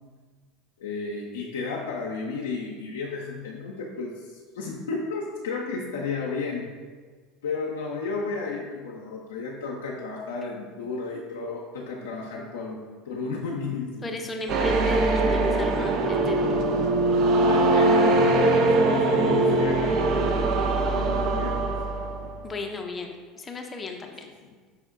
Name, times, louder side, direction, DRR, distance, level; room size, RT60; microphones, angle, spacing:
voice 1, 0.8-6.7 7.4-12.8 13.1-14.1 17.1-20.3 20.9-21.8 24.0-24.1, left 4 dB, 85° left, -3 dB, 0.4 m, -33 dB
voice 2, 14.0-16.5 22.4-24.3, left 3 dB, 25° left, 3 dB, 0.5 m, -35 dB
sound 1, 14.5-22.4, right 2 dB, 55° right, 0.4 m, -22 dB
5.6 x 2.1 x 3.5 m, 1.5 s
hypercardioid pair, 85°, 0 cm